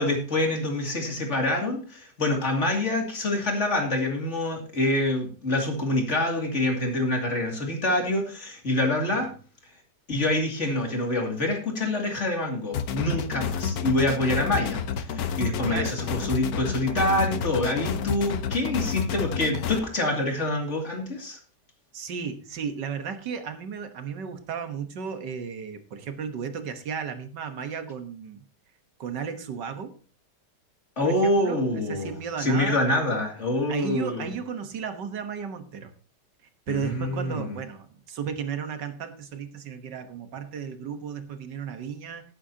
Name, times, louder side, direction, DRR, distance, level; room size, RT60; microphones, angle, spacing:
voice 1, 0.0-9.3 10.1-21.4 31.0-32.1 32.4-34.3 36.7-37.5, left 1 dB, 40° left, 2 dB, 2.8 m, -26 dB
sound 1, 12.7-19.8, left 7 dB, 65° left, 1.2 m, -30 dB
voice 2, 21.9-28.4 29.0-29.9 31.0-33.0 33.7-35.9 36.7-42.2, right 6 dB, 80° right, 8 dB, 1.9 m, -34 dB
18.0 x 8.9 x 2.8 m, 0.37 s
omnidirectional pair, 1.9 m